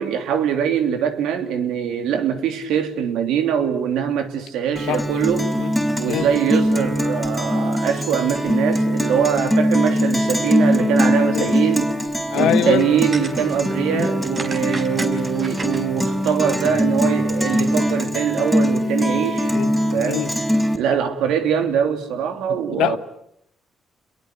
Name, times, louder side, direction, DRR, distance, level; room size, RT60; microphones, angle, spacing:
voice 1, 0.0-5.5 6.0-11.9 12.3-19.5 19.9-20.3 20.7-23.0, right 8 dB, 90° right, 3.3 m, -22 dB
Guitar, 4.8-20.8, equal, 5° right, 5.0 m, -22 dB
voice 2, 12.3-12.9 13.9-14.1 19.5-19.7 20.1-20.3 22.8-23.0, left 12 dB, 85° left, 1.4 m, -23 dB
sound 1, 12.6-18.0, right 3 dB, 35° right, 5.0 m, -38 dB
28.5 x 22.5 x 8.1 m
cardioid pair, 90°, 0 cm